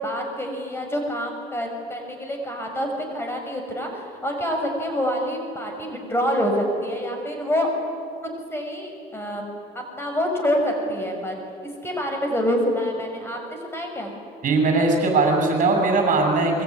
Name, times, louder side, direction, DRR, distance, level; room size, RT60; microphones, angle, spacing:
voice 1, 0.0-7.7 8.2-9.4 9.7-11.3 11.8-14.1, equal, 15° left, 2 dB, 5.9 m, -26 dB
voice 2, 14.4-16.6, right 3 dB, 50° right, 3 dB, 6.7 m, -20 dB
25.5 x 22.5 x 9.7 m, 2.5 s
cardioid pair, 110°, 17 cm